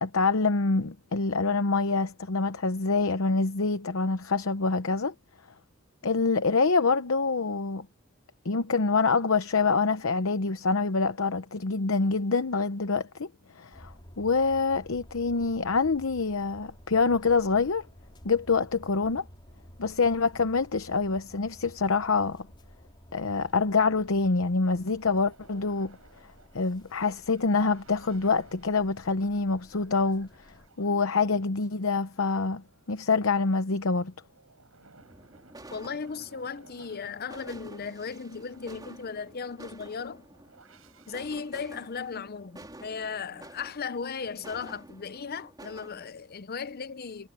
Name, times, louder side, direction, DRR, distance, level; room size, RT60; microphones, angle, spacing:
voice 1, 0.0-5.1 6.0-7.9 8.4-13.3 13.5-17.8 18.2-19.2 19.8-22.5 23.1-26.0 26.5-30.3 30.8-34.1, left 4 dB, 75° left, 0.9 m, -26 dB
sound 1, 13.7-30.7, equal, 20° left, 4.2 m, -53 dB
sound 2, 23.5-23.6 23.9-41.2, right 3 dB, 90° right, 6.4 m, -59 dB
sound 3, 35.0-46.1, right 1 dB, 20° right, 3.9 m, -50 dB
voice 2, 35.7-40.2 41.1-47.3, left 5 dB, 50° left, 0.7 m, -36 dB
head